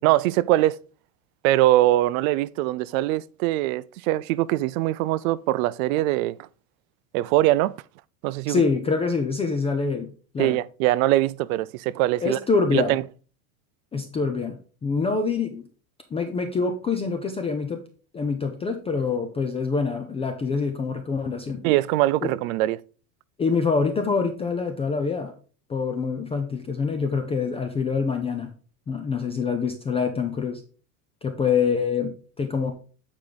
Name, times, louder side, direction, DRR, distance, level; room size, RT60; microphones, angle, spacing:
voice 1, 0.0-0.8 1.4-6.5 7.1-7.8 8.2-8.6 10.4-12.4 12.7-13.0 21.6-22.8, right 16 dB, 70° right, 0.5 m, -22 dB
voice 2, 8.5-10.1 10.3-10.6 12.2-13.0 13.9-14.6 14.8-15.6 16.1-17.8 18.1-21.6 22.2-22.4 23.4-25.3 25.7-28.5 28.9-30.6 31.2-32.7, left 5 dB, 15° left, 0.5 m, -25 dB
8.5 x 4.9 x 4.0 m
supercardioid pair, 140°, 44 cm